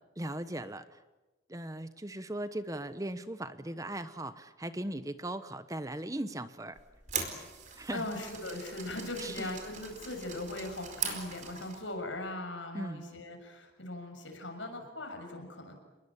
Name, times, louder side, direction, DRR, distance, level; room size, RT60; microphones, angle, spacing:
voice 1, 0.2-1.0 1.5-6.8 7.8-8.1 9.2-9.5 12.7-13.1, right 1 dB, 15° right, 12 dB, 1.0 m, -38 dB
sound 1, 6.8-11.9, right 6 dB, 40° right, 4.5 m, -41 dB
voice 2, 7.9-15.7, left 2 dB, 80° left, 4 dB, 6.8 m, -39 dB
29.5 x 21.0 x 8.8 m, 1.1 s
head